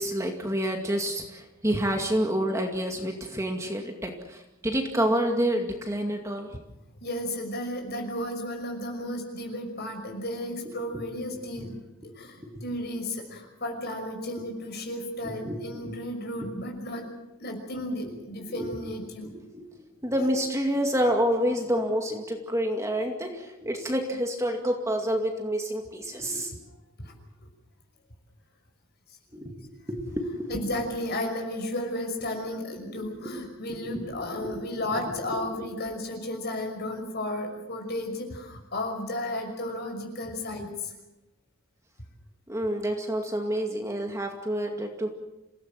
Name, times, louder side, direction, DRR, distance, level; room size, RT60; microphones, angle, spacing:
voice 1, 0.0-6.6 12.4-12.6 15.3-15.6 15.8-15.9 18.5-18.7 19.3-19.7 20.0-26.5 29.3-29.6 29.9-30.6 33.0-33.4 33.8-34.0 34.4-34.6 42.5-45.1, equal, 15° right, 2 dB, 2.3 m, -28 dB
voice 2, 7.0-17.1 17.4-19.3 27.0-27.1 30.5-40.9, left 1 dB, 50° left, 4 dB, 5.8 m, -33 dB
27.5 x 17.5 x 7.7 m, 1.0 s
head